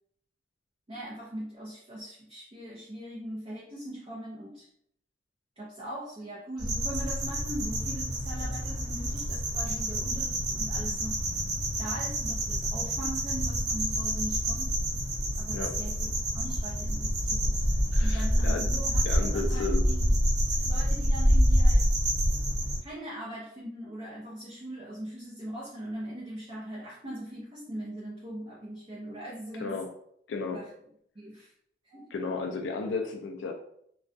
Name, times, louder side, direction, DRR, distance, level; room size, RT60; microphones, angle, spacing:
voice 1, 0.9-4.7 5.6-11.2 11.8-14.8 15.4-20.2 20.6-21.9 22.8-29.8 30.5-30.7 31.1-31.5 31.8-32.2, right 1 dB, 30° right, -6 dB, 0.5 m, -41 dB
sound 1, 6.6-22.8, equal, 75° right, 1.0 m, -27 dB
voice 2, 17.9-18.7 19.0-19.9 29.6-29.9 30.3-30.6 32.1-33.5, left 4 dB, 80° left, 3 dB, 0.3 m, -33 dB
2.3 x 2.2 x 2.5 m, 0.68 s
head